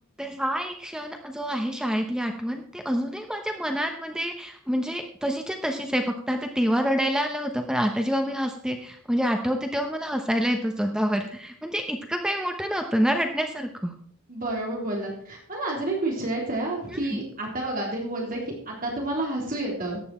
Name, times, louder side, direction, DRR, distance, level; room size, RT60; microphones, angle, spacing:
voice 1, 0.2-13.9 16.9-17.2, equal, 5° right, 4 dB, 0.8 m, -27 dB
voice 2, 14.3-20.0, right 2 dB, 40° right, -2 dB, 3.6 m, -30 dB
14.0 x 9.4 x 4.3 m, 0.63 s
head